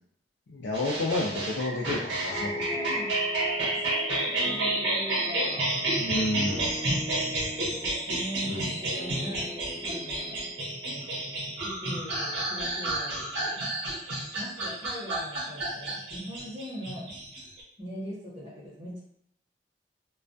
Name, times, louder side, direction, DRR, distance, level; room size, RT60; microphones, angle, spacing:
voice 1, 0.5-3.0 6.0-6.7 8.4-8.8, left 2 dB, 80° left, -2 dB, 0.4 m, -31 dB
sound 1, 0.7-17.6, right 2 dB, 90° right, 0.8 m, -30 dB
sound 2, 2.3-12.0, left 2 dB, 15° left, 0.4 m, -41 dB
voice 2, 2.5-3.1 3.6-5.7 6.1-6.2 6.6-6.7 7.1-10.5 11.6-13.6 14.4-17.1 17.8-19.0, equal, 35° right, -9 dB, 0.8 m, -41 dB
2.2 x 2.1 x 2.5 m, 0.72 s
head